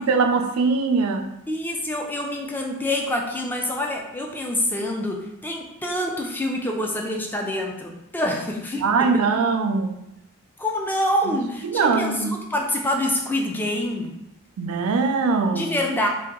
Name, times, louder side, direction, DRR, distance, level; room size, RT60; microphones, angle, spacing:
voice 1, 0.1-1.3 8.8-10.0 11.6-12.3 14.6-15.7, right 4 dB, 85° right, 6 dB, 0.4 m, -21 dB
voice 2, 1.5-9.3 10.6-14.1 15.6-16.1, left 1 dB, 10° left, 1 dB, 0.3 m, -26 dB
2.8 x 2.2 x 3.6 m, 0.88 s
head